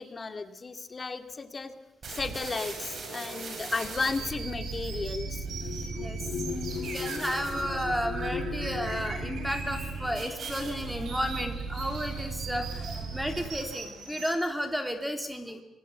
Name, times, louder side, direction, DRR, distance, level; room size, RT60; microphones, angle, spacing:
voice 1, 0.0-1.7 2.1-5.5 6.3-7.3, left 4 dB, 30° left, 8 dB, 2.3 m, -34 dB
sound 1, 2.0-13.8, right 4 dB, 50° right, 7.7 m, -38 dB
sound 2, 2.9-11.8 12.7-12.8 13.2-13.8, left 6 dB, 65° left, 2.8 m, -41 dB
sound 3, 3.8-14.3, right 4 dB, 70° right, 7.9 m, -42 dB
voice 2, 6.8-15.6, equal, 5° right, 6 dB, 3.2 m, -33 dB
25.5 x 20.5 x 8.6 m, 0.89 s
cardioid pair, 90°, 0 cm